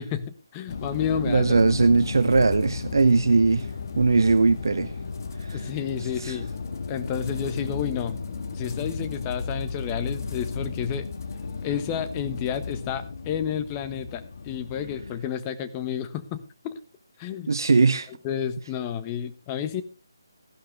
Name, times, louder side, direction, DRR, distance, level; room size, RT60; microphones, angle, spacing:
voice 1, 0.0-1.5 5.5-6.5 6.9-8.2 8.5-11.1 11.6-16.8 17.2-17.5 18.1-19.8, left 8 dB, 20° left, 1.3 m, -31 dB
sound 1, 0.7-15.2, left 4 dB, 50° left, 1.8 m, -34 dB
voice 2, 1.3-3.7 4.0-4.9 5.5-5.6 6.2-6.4 17.5-18.1, right 4 dB, 65° right, 0.8 m, -20 dB
15.0 x 11.5 x 3.4 m
figure-of-eight pair, 150°, 2 cm